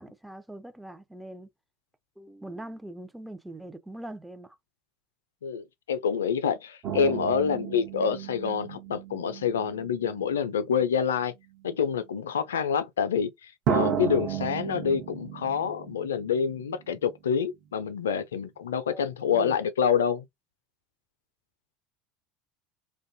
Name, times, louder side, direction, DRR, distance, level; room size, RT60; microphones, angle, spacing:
voice 1, 0.0-1.5 2.2-4.6 18.9-19.6, right 1 dB, 5° right, 0.4 m, -42 dB
voice 2, 5.4-11.3 11.6-20.3, left 7 dB, 80° left, 0.3 m, -27 dB
sound 1, 6.8-10.8 11.7-11.8 13.7-17.0 17.3-17.4, right 8 dB, 50° right, 0.7 m, -33 dB
2.5 x 2.2 x 2.6 m
figure-of-eight pair, 70°, 0 cm